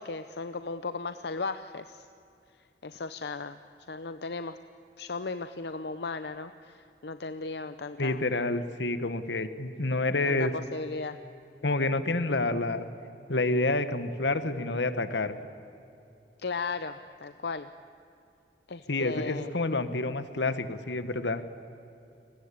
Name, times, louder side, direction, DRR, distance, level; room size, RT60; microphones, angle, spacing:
voice 1, 0.0-2.1 2.8-3.6 3.9-4.6 5.0-8.3 10.3-11.2 16.4-17.7 18.7-19.5, left 4 dB, 70° left, 10 dB, 0.7 m, -36 dB
voice 2, 8.0-10.5 11.6-12.9 13.3-15.3 18.9-21.4, left 2 dB, 85° left, 11 dB, 1.4 m, -28 dB
30.0 x 20.0 x 8.5 m, 2.7 s
head